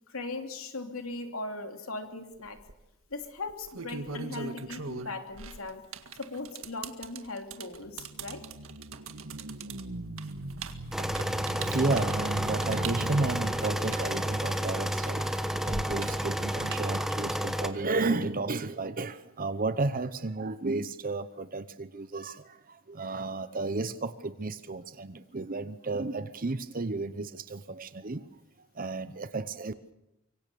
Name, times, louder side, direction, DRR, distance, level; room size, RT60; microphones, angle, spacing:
voice 1, 0.1-2.6 3.1-5.9 6.2-8.5, left 2 dB, 80° left, 2.9 m, -39 dB
sound 1, 2.4-2.7 3.5-14.8 15.2-17.2, right 5 dB, 75° right, 1.9 m, -41 dB
sound 2, 7.8-14.2, right 2 dB, 90° right, 1.5 m, -40 dB
sound 3, 10.9-17.7, equal, ahead, 1.3 m, -31 dB
voice 2, 11.4-15.2 15.7-28.3 28.7-29.7, right 3 dB, 40° right, 0.8 m, -32 dB
25.0 x 24.0 x 6.9 m
head